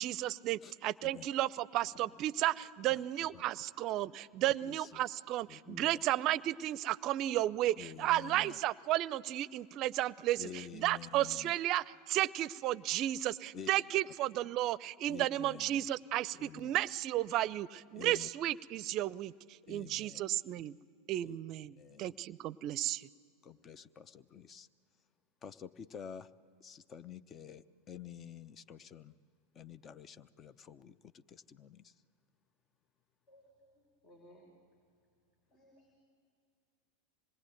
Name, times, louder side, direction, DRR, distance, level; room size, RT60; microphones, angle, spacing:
voice 1, 0.0-19.3 19.7-20.8 21.1-23.1, right 14 dB, 45° right, 21 dB, 0.5 m, -33 dB
voice 2, 2.9-3.4 4.6-5.0 5.5-6.0 7.8-8.6 10.4-11.6 13.5-13.7 15.1-15.9 16.4-16.8 17.9-18.3 19.6-20.2 21.2-21.3 21.8-22.1 23.4-24.7 25.4-26.3 26.6-29.1 29.5-31.9, left 8 dB, 35° left, 15 dB, 0.8 m, -49 dB
voice 3, 33.3-33.7 34.0-34.4 35.5-36.0, equal, 55° left, 0 dB, 5.1 m, -61 dB
26.0 x 21.0 x 9.2 m, 2.3 s
hypercardioid pair, 90°, 0 cm